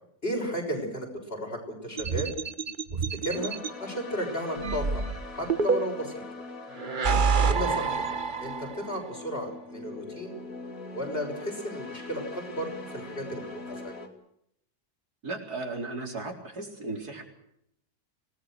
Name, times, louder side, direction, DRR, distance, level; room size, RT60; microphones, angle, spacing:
voice 1, 0.2-2.3 2.9-3.5 3.8-5.0 5.3-6.2 7.5-8.1 8.4-10.3 10.9-13.9, equal, 35° left, 2 dB, 6.5 m, -34 dB
sound 1, 2.0-3.7 4.6-6.2 6.8-8.9, right 5 dB, 35° right, 1.0 m, -27 dB
sound 2, 3.3-14.1, left 2 dB, 55° left, 3.3 m, -42 dB
voice 2, 15.2-17.2, right 3 dB, 70° right, 2 dB, 4.8 m, -36 dB
26.5 x 19.0 x 6.6 m, 0.75 s
omnidirectional pair, 1.7 m